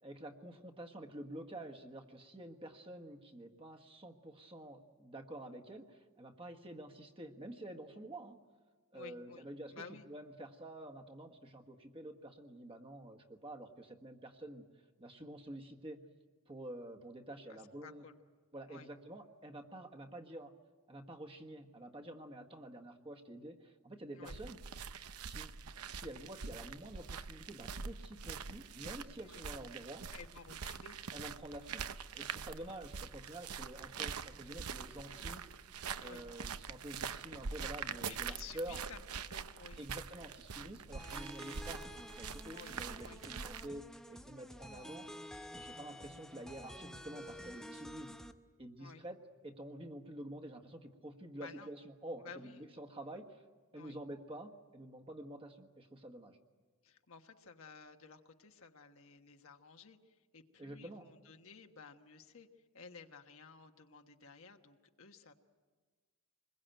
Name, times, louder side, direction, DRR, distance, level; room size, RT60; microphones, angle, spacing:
voice 1, 0.0-8.4 8.9-9.7 10.0-14.7 15.0-16.0 16.5-18.0 18.5-20.5 20.9-24.6 25.2-30.0 31.1-31.8 32.1-35.4 36.0-38.8 39.8-45.1 45.6-48.2 48.6-49.2 49.4-53.4 53.7-56.4 60.6-61.1, right 1 dB, 25° right, 4 dB, 1.6 m, -49 dB
voice 2, 8.9-9.4 9.7-10.1 17.5-18.1 18.7-18.9 24.1-24.4 29.2-29.4 30.1-31.0 36.0-36.2 38.0-39.8 42.5-43.2 48.8-49.0 51.3-51.7 52.2-52.6 53.7-54.0 56.8-62.5 62.7-65.3, left 5 dB, 65° left, 5 dB, 1.3 m, -54 dB
sound 1, 24.3-43.7, right 6 dB, 90° right, 0.8 m, -44 dB
sound 2, 40.9-48.3, left 1 dB, 5° left, 0.8 m, -50 dB
26.0 x 21.5 x 9.1 m, 1.4 s
head